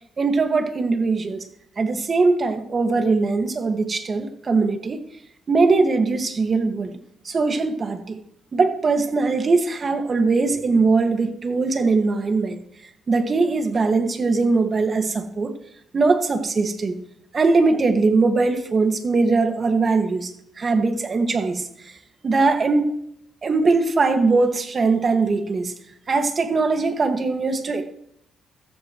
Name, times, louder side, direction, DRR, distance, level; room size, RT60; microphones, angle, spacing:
voice 1, 0.2-1.4 1.8-5.0 5.5-7.0 7.2-8.2 8.5-12.6 13.1-15.5 15.9-17.0 17.3-21.9 22.2-23.0 23.4-25.7 26.1-27.8, right 3 dB, 40° right, 6 dB, 2.0 m, -21 dB
14.5 x 14.0 x 3.2 m, 0.73 s
cardioid pair, 90°, 0 cm